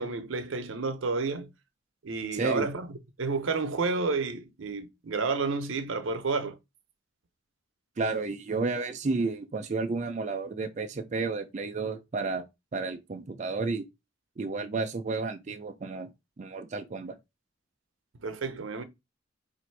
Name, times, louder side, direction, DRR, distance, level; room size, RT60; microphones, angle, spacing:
voice 1, 0.0-1.5 2.0-6.6 18.2-18.8, right 4 dB, 80° right, 0.7 m, -30 dB
voice 2, 2.3-2.7 8.0-12.4 12.7-13.9 14.4-16.1 16.4-17.2, right 3 dB, 40° right, 0.4 m, -31 dB
3.4 x 2.6 x 4.5 m
head